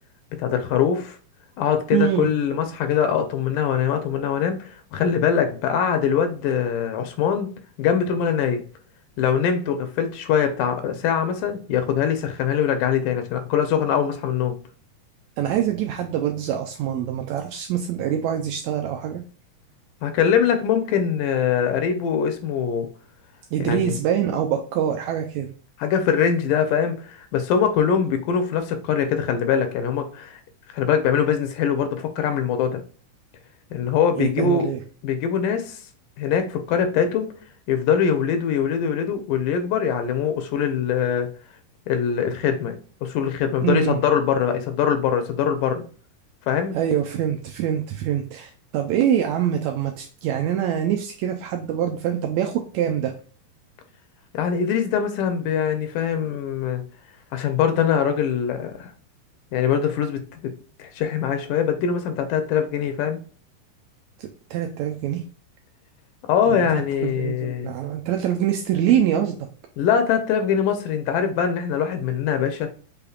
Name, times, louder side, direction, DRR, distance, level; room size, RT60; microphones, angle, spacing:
voice 1, 0.4-1.2 1.6-7.5 7.8-8.6 9.2-14.5 20.0-22.9 23.6-24.0 25.8-30.4 30.7-32.8 33.7-34.7 35.0-35.8 36.2-37.3 37.7-41.3 41.9-42.8 43.0-45.8 46.5-46.8 54.3-56.8 57.3-58.9 59.5-60.5 60.8-63.2 66.3-67.7 69.8-72.7, left 7 dB, 80° left, 7 dB, 2.3 m, -22 dB
voice 2, 1.9-2.3 15.4-19.2 23.5-25.5 34.2-34.8 43.6-44.0 46.7-53.1 64.2-65.2 66.5-66.6 67.0-69.5, right 10 dB, 90° right, 3 dB, 1.5 m, -24 dB
5.7 x 3.5 x 2.3 m, 0.40 s
omnidirectional pair, 3.8 m